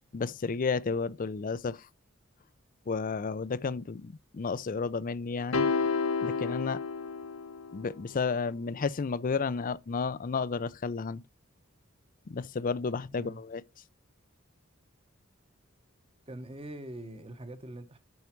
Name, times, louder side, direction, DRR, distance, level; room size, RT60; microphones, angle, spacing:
voice 1, 0.1-1.8 2.9-5.7 6.2-6.8 7.7-11.2 12.3-13.6, left 4 dB, 40° left, 0.4 m, -32 dB
sound 1, 5.5-7.9, left 4 dB, 70° left, 0.7 m, -30 dB
voice 2, 16.3-18.0, right 1 dB, 25° right, 1.0 m, -43 dB
11.0 x 4.7 x 4.5 m
head